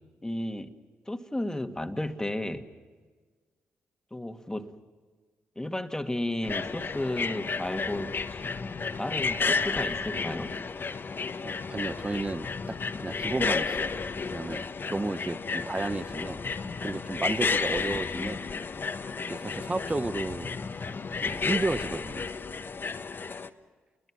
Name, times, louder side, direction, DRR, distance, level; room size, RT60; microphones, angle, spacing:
voice 1, 0.2-0.7 1.1-2.7 4.1-4.7 5.6-10.5 17.9-18.0, left 1 dB, 10° left, 2.0 m, -33 dB
sound 1, 6.4-23.5, left 4 dB, 45° left, 1.3 m, -32 dB
voice 2, 11.4-14.0 14.3-14.6 14.9-16.4 16.8-18.5 19.3-20.5 21.2-22.3, right 2 dB, 20° right, 0.8 m, -32 dB
29.0 x 21.5 x 6.2 m
hypercardioid pair, 45°, 5 cm